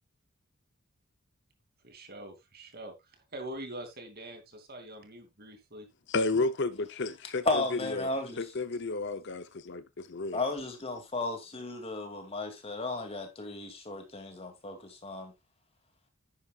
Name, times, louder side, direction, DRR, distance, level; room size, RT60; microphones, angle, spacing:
voice 1, 1.8-5.9, right 1 dB, 45° right, 2.7 m, -44 dB
voice 2, 6.1-8.1 8.4-10.4, left 3 dB, 55° left, 0.7 m, -32 dB
voice 3, 7.4-8.5 10.3-15.3, left 2 dB, 30° left, 2.4 m, -34 dB
10.5 x 9.8 x 2.4 m
head